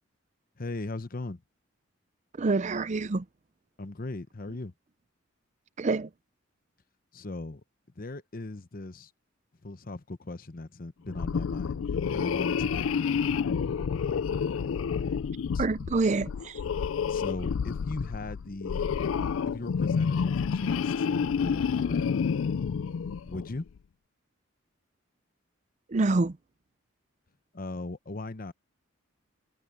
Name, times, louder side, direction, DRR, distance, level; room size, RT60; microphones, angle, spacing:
voice 1, 0.6-1.4 3.8-4.7 7.1-7.6 8.0-9.1 9.6-11.8 12.1-13.5 15.5-15.7 17.1-18.9 19.4-22.3 23.2-23.7 27.5-28.5, left 2 dB, 45° left, 0.9 m, -38 dB
voice 2, 2.3-3.3 5.8-6.1 15.6-16.6 25.9-26.4, right 3 dB, 35° right, 0.5 m, -26 dB
sound 1, 11.1-23.6, left 6 dB, 75° left, 0.4 m, -29 dB
head